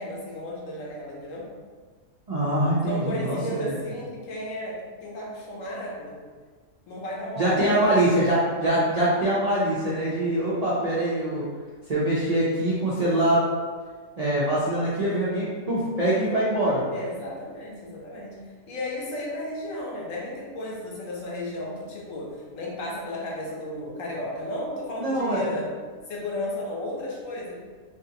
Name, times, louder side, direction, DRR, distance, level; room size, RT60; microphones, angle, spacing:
voice 1, 0.0-1.5 2.9-6.2 6.9-8.1 16.9-18.4 18.7-25.7 26.1-27.6, left 1 dB, 75° left, -4 dB, 1.1 m, -34 dB
voice 2, 2.3-3.8 7.4-11.4 11.9-13.4 14.2-16.8 25.0-25.5, right 1 dB, 55° right, -9 dB, 0.4 m, -24 dB
3.3 x 2.5 x 2.8 m, 1.5 s
omnidirectional pair, 1.4 m